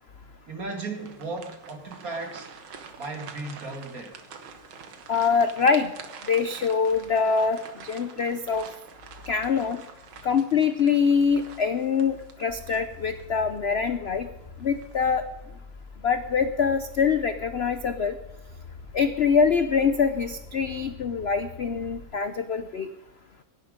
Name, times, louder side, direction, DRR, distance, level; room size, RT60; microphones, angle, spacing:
voice 1, 0.5-2.5 3.0-4.2, right 3 dB, 45° right, 3 dB, 2.8 m, -35 dB
sound 1, 0.7-13.4 13.8-14.0 14.6-15.1, right 6 dB, 85° right, 2.1 m, -46 dB
voice 2, 5.1-5.9 6.3-8.6 9.3-9.8 10.2-14.3 14.6-15.2 16.0-18.2 18.9-22.9, left 6 dB, 70° left, 10 dB, 0.6 m, -24 dB
sound 2, 12.5-22.0, left 4 dB, 20° left, 2.4 m, -45 dB
17.0 x 12.0 x 5.1 m, 1.0 s
omnidirectional pair, 2.1 m